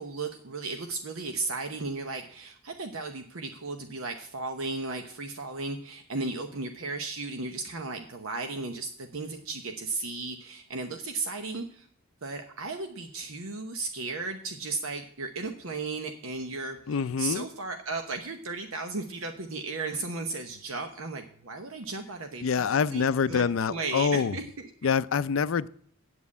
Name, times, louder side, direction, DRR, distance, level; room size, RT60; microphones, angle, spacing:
voice 1, 0.0-11.9 12.2-24.7, right 3 dB, 75° right, 0.9 m, -35 dB
voice 2, 16.9-17.5 22.4-24.3 24.8-25.7, left 6 dB, 70° left, 0.4 m, -26 dB
8.0 x 7.5 x 8.5 m
head